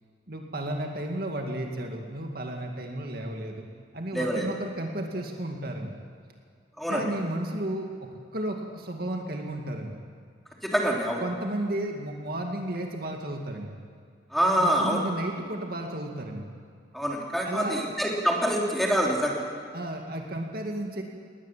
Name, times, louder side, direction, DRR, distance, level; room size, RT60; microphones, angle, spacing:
voice 1, 0.3-3.7 3.9-6.0 6.9-10.0 11.2-13.8 14.6-16.5 17.4-18.0 19.7-21.0, right 1 dB, 55° right, 2 dB, 2.2 m, -33 dB
voice 2, 4.1-4.5 6.8-7.0 10.6-11.2 14.3-15.0 16.9-19.4, equal, ahead, -2 dB, 3.2 m, -25 dB
20.0 x 19.5 x 7.5 m, 2.2 s
head